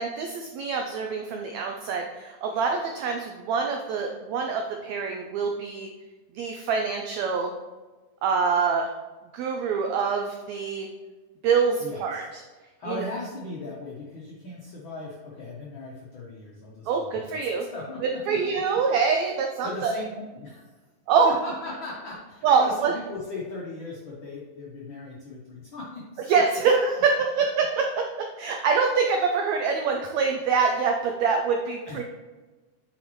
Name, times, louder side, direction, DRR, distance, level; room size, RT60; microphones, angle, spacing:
voice 1, 0.0-5.9 6.3-7.5 8.2-8.9 9.3-10.9 11.4-12.2 12.9-13.1 16.9-17.6 18.3-19.9 21.1-21.3 22.4-22.9 26.3-32.0, right 5 dB, 85° right, 3 dB, 1.5 m, -25 dB
voice 2, 11.8-12.2 12.8-16.9 17.1-18.4 19.6-20.6 21.2-26.3 31.9-32.0, left 3 dB, 85° left, -4 dB, 1.0 m, -38 dB
8.5 x 5.1 x 3.1 m, 1.2 s
omnidirectional pair, 3.8 m